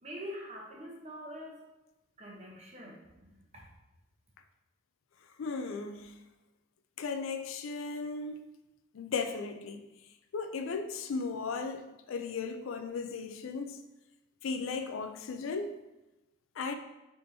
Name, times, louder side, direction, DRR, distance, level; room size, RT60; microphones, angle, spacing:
voice 1, 0.0-1.6 2.2-3.6, equal, 35° right, -1 dB, 0.8 m, -45 dB
voice 2, 5.4-6.1 7.0-8.4 8.9-9.8 10.3-13.8 14.4-15.7 16.6-16.7, left 4 dB, 85° left, 7 dB, 0.4 m, -36 dB
4.3 x 3.5 x 2.7 m, 1.0 s
head